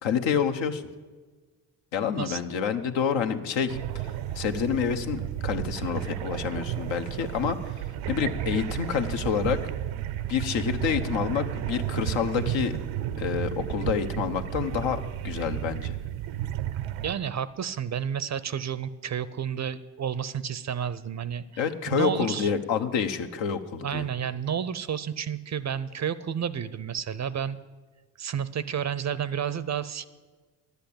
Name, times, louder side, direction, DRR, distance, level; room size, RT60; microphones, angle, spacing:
voice 1, 0.0-0.8 1.9-4.1 4.3-9.6 10.3-12.8 13.2-16.0 21.6-24.0, left 7 dB, 70° left, 7 dB, 1.0 m, -28 dB
sound 1, 3.7-17.1, right 12 dB, 75° right, 0.7 m, -32 dB
voice 2, 17.0-22.5 23.8-27.6 28.2-30.1, right 8 dB, 35° right, 17 dB, 0.5 m, -31 dB
11.0 x 8.1 x 8.6 m, 1.4 s
supercardioid pair, 65°, 47 cm